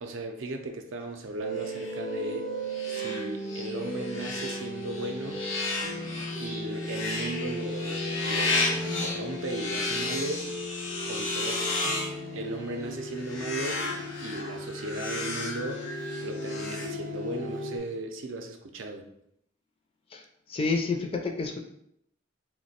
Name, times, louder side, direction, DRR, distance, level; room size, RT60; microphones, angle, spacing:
voice 1, 0.0-2.5 2.9-5.4 6.4-10.5 11.1-11.8 12.3-13.8 14.2-15.9 16.2-19.1, right 2 dB, 85° right, 4 dB, 0.5 m, -36 dB
sound 1, 1.4-17.8, equal, 30° right, 0.5 m, -36 dB
sound 2, 1.6-17.5, left 2 dB, 80° left, 0.8 m, -34 dB
voice 2, 20.5-21.6, left 4 dB, 30° left, 2 dB, 0.4 m, -29 dB
2.9 x 2.1 x 4.1 m, 0.73 s
head